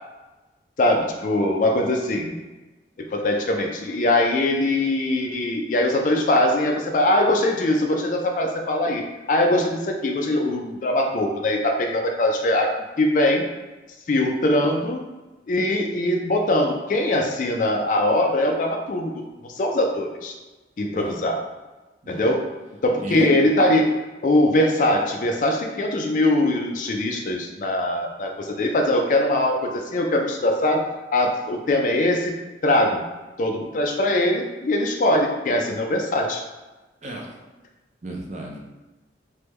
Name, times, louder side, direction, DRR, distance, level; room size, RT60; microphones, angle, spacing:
voice 1, 0.8-2.3 3.0-12.7 13.0-13.4 14.1-15.0 15.5-20.3 20.8-21.4 22.1-22.4 22.8-30.8 31.1-32.4 32.6-33.1 33.4-36.4, left 1 dB, 45° left, 2 dB, 0.3 m, -22 dB
voice 2, 37.0-37.3 38.0-38.6, right 1 dB, 40° right, -1 dB, 0.5 m, -34 dB
3.3 x 2.2 x 3.1 m, 1.1 s
head